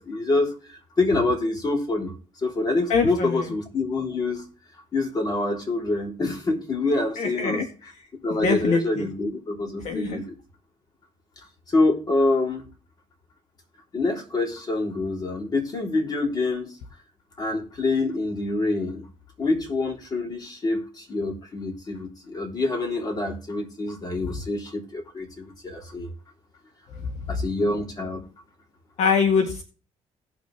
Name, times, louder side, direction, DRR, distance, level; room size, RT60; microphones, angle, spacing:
voice 1, 0.0-2.1 2.4-4.4 4.9-7.6 8.2-10.3 11.7-12.7 13.9-16.8 17.4-19.1 19.4-26.1 27.3-28.3, left 2 dB, 30° left, 1 dB, 3.8 m, -26 dB
voice 2, 2.9-3.5 7.2-7.7 8.3-9.1 9.8-10.2 29.0-29.6, left 5 dB, 65° left, 4 dB, 1.8 m, -23 dB
18.0 x 6.2 x 3.3 m, 0.36 s
cardioid pair, 115°, 12 cm